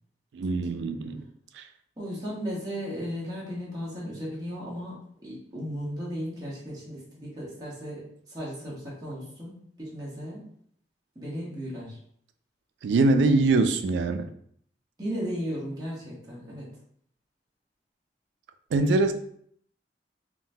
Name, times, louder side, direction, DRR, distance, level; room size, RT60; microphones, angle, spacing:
voice 1, 0.3-1.2 1.6-1.7 12.8-14.3 18.7-19.1, right 3 dB, 90° right, 8 dB, 0.3 m, -23 dB
voice 2, 2.0-10.5 11.1-12.0 15.0-16.7, equal, 20° right, -7 dB, 1.1 m, -35 dB
3.7 x 2.2 x 2.7 m, 0.64 s
head